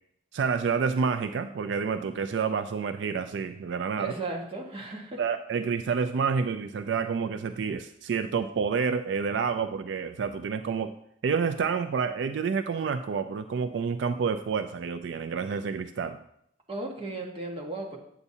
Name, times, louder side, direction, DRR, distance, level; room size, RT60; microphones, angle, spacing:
voice 1, 0.3-4.1 5.2-10.9 11.2-16.2, right 5 dB, 75° right, 10 dB, 0.3 m, -29 dB
voice 2, 4.0-5.2 16.7-18.0, right 2 dB, 30° right, 0 dB, 1.2 m, -35 dB
8.2 x 8.0 x 2.7 m, 0.74 s
head